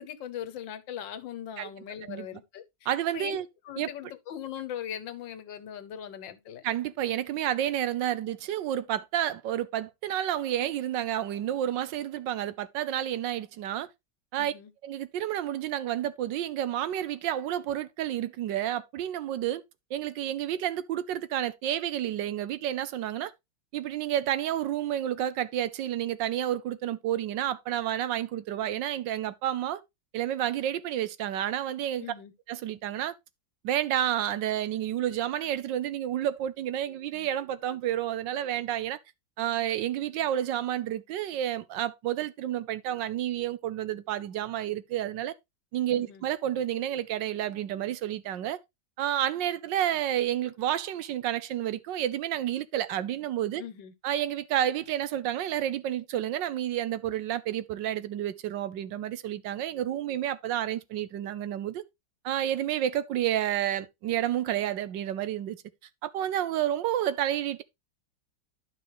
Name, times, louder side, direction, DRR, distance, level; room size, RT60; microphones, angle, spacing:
voice 1, 0.0-3.4 3.7-6.6 14.4-14.7 32.0-32.3 45.9-46.2 53.6-53.9, left 9 dB, 85° left, 1.7 m, -40 dB
voice 2, 2.9-3.5 3.8-3.9 6.6-13.9 14.3-14.5 14.8-19.6 19.9-23.3 23.7-29.8 30.1-32.1 32.5-33.1 33.6-39.0 39.4-45.3 45.7-48.6 49.0-53.6 54.0-61.8 62.2-65.6 66.0-67.6, right 11 dB, 80° right, 1.4 m, -30 dB
11.5 x 5.3 x 3.1 m
omnidirectional pair, 2.0 m